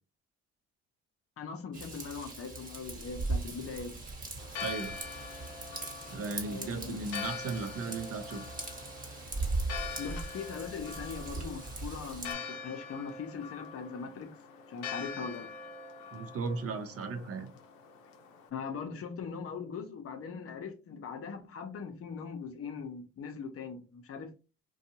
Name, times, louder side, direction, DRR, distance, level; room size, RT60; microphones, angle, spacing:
voice 1, 1.4-4.0 6.4-7.0 10.0-14.3 14.7-15.5 18.5-24.3, left 5 dB, 50° left, 0.7 m, -40 dB
Raindrop / Vehicle horn car horn honking / Trickle dribble, 1.7-12.3, right 3 dB, 25° right, 1.2 m, -39 dB
Church bell, 4.4-18.5, left 5 dB, 85° left, 0.6 m, -44 dB
voice 2, 4.6-5.0 6.1-8.5 16.1-17.5, right 4 dB, 50° right, 0.7 m, -36 dB
2.5 x 2.3 x 2.8 m
supercardioid pair, 70°, 30 cm